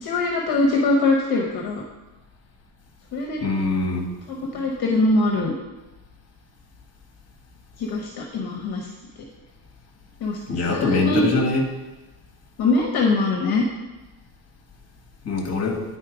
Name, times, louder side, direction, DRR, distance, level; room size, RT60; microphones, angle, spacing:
voice 1, 0.0-1.8 3.1-3.4 4.3-5.5 7.8-8.9 10.2-11.2 12.6-13.6, left 2 dB, 45° left, -1 dB, 1.1 m, -22 dB
voice 2, 3.4-4.1 10.5-11.7 15.2-15.8, left 3 dB, 30° left, 2 dB, 1.6 m, -23 dB
9.9 x 4.3 x 5.0 m, 1.1 s
cardioid pair, 140°, 50 cm